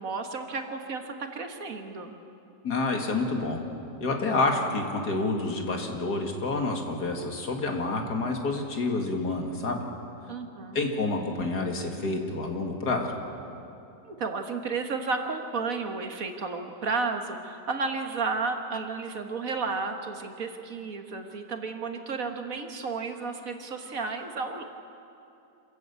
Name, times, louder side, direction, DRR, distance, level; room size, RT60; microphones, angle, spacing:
voice 1, 0.0-2.2 10.3-10.8 14.0-24.6, right 4 dB, 55° right, 5 dB, 1.8 m, -32 dB
voice 2, 2.6-3.6 4.0-9.8 10.7-13.1, left 3 dB, 75° left, 3 dB, 2.7 m, -28 dB
26.5 x 14.5 x 8.4 m, 2.7 s
omnidirectional pair, 1.7 m